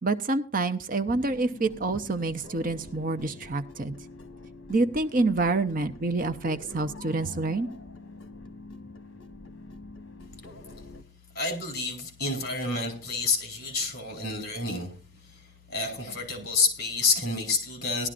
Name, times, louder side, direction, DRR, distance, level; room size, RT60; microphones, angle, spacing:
voice 1, 0.0-3.9 4.7-7.7, right 3 dB, 40° right, 8 dB, 0.7 m, -27 dB
sound 1, 1.0-11.0, left 2 dB, 65° left, 1.3 m, -45 dB
voice 2, 11.3-14.9 15.2-18.1, left 3 dB, 45° left, 4 dB, 3.9 m, -29 dB
18.5 x 12.0 x 2.5 m, 0.37 s
head